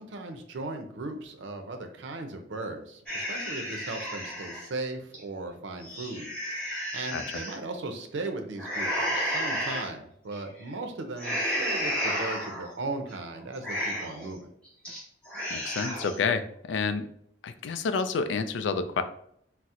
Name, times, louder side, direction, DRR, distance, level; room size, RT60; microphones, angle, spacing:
voice 1, 0.0-6.7 6.9-14.5, right 2 dB, 90° right, 5 dB, 0.5 m, -37 dB
sound 1, 3.1-4.7 5.1-5.2 5.7-7.5 8.6-9.9 10.3-10.7 11.2-12.7 13.1-13.2 13.5-14.3 14.6-15.0 15.3-16.2, equal, 5° left, 1.2 m, -32 dB
voice 2, 15.5-17.0 17.4-19.0, left 5 dB, 80° left, 10 dB, 0.3 m, -29 dB
4.1 x 2.0 x 2.4 m, 0.68 s
head